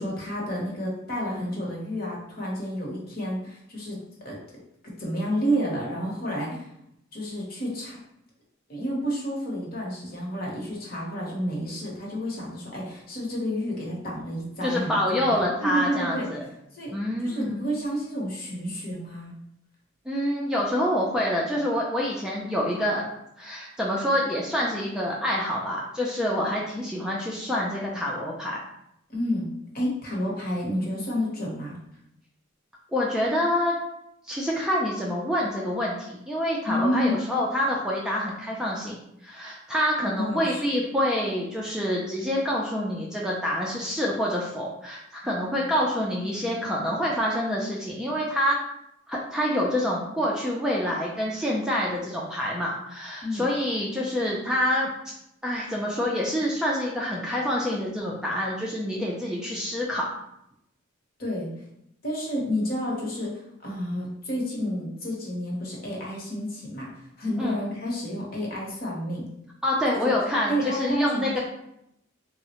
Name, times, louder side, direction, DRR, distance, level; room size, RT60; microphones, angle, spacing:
voice 1, 0.0-4.4 5.0-6.7 7.1-8.0 8.7-14.9 15.2-16.2 16.7-16.9 17.2-19.3 29.1-29.5 29.7-31.8 36.6-37.3 40.0-40.6 53.2-53.5 61.2-61.5 62.0-66.9 67.2-69.3 70.0-70.2 70.5-71.4, equal, 45° left, -3 dB, 0.9 m, -30 dB
voice 2, 14.6-16.4 16.9-17.6 20.1-23.0 23.4-28.6 32.9-33.8 34.3-39.0 39.2-48.6 49.1-54.9 55.4-60.1 67.4-67.6 69.6-71.4, left 1 dB, 5° right, -4 dB, 0.3 m, -27 dB
3.5 x 2.0 x 2.9 m, 0.79 s
head